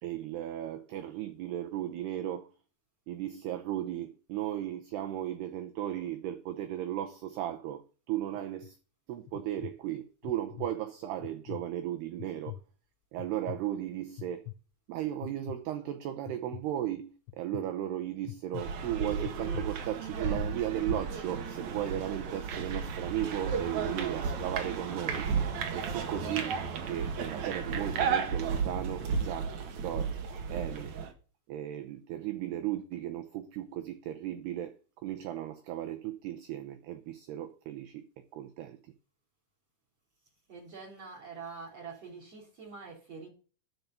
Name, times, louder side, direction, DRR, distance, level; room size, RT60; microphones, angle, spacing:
voice 1, 0.0-2.5 3.1-8.8 9.1-12.6 13.1-14.5 14.9-25.3 25.7-26.6 26.8-29.5 29.8-30.2 30.5-30.9 31.5-38.1 38.3-38.9, right 12 dB, 90° right, 2.3 m, -36 dB
sound 1, 8.3-8.7 9.3-9.7 10.2-10.7 11.2-11.6 12.2-12.6 13.2-13.6 14.2-14.6 15.2-15.6 16.3-16.6 17.3-17.6 18.3-18.6 19.2-19.6, left 17 dB, 80° left, 3.0 m, -42 dB
sound 2, 18.6-31.1, right 5 dB, 70° right, 1.7 m, -33 dB
voice 2, 40.5-43.3, right 5 dB, 35° right, 3.7 m, -45 dB
12.5 x 5.4 x 7.9 m
omnidirectional pair, 6.0 m